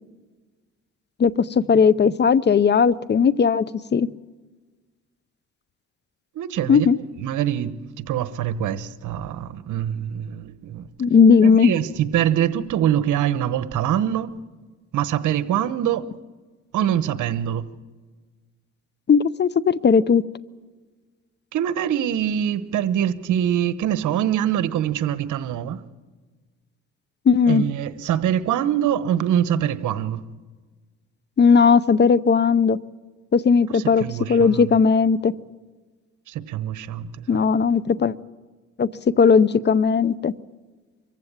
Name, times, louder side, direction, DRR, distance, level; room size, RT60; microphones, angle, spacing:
voice 1, 1.2-3.6 3.9-4.1 6.7-7.0 11.0-11.7 19.1-20.2 27.3-27.6 31.4-32.8 33.3-34.0 34.3-35.3 37.3-38.2 38.8-38.9 39.2-40.3, left 6 dB, 35° left, 0.6 m, -17 dB
voice 2, 6.3-10.9 11.4-14.3 14.9-16.1 16.7-17.7 21.5-25.8 27.5-30.2 33.7-34.8 36.3-37.4, right 10 dB, 80° right, 1.1 m, -24 dB
24.5 x 15.0 x 8.8 m
cardioid pair, 90°, 30 cm